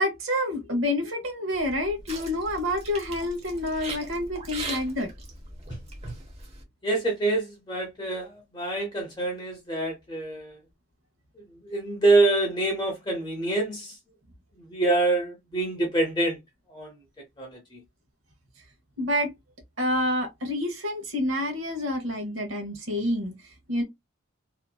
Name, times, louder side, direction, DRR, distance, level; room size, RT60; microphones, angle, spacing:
voice 1, 0.0-5.1 19.0-19.3 19.8-23.8, left 1 dB, 75° right, 1.0 m, -28 dB
sound 1, 1.6-6.6, right 3 dB, 30° right, 0.7 m, -40 dB
voice 2, 6.8-10.6 11.6-14.0 14.7-16.4 16.7-16.9 17.4-17.8, right 2 dB, 20° left, 0.6 m, -26 dB
2.8 x 2.5 x 2.2 m
head